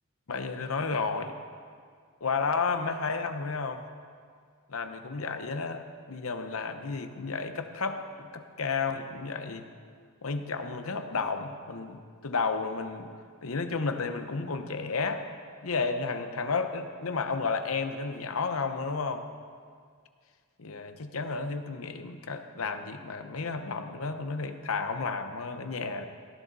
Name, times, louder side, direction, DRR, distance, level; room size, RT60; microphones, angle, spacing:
voice 1, 0.3-1.3 2.2-3.8 4.7-9.7 10.2-13.1 13.4-15.2 15.6-19.2 20.6-26.1, left 4 dB, 85° left, 8 dB, 0.8 m, -32 dB
17.5 x 10.5 x 4.1 m, 2.1 s
head